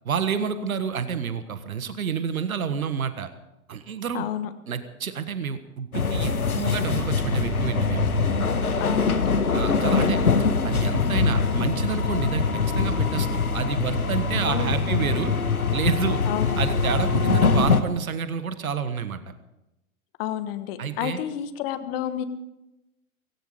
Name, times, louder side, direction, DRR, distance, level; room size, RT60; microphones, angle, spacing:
voice 1, 0.0-3.3 3.7-4.3 4.7-8.1 9.5-10.2 10.6-15.3 15.7-16.2 16.6-19.2 20.8-21.2, right 7 dB, 75° right, 11 dB, 1.5 m, -29 dB
voice 2, 4.1-4.5 8.8-9.3 14.4-15.0 16.2-16.6 20.2-22.2, left 11 dB, 40° left, 11 dB, 1.4 m, -30 dB
sound 1, 5.9-17.8, left 4 dB, 85° left, 1.4 m, -23 dB
17.0 x 16.5 x 4.9 m, 0.94 s
figure-of-eight pair, 105°, 43 cm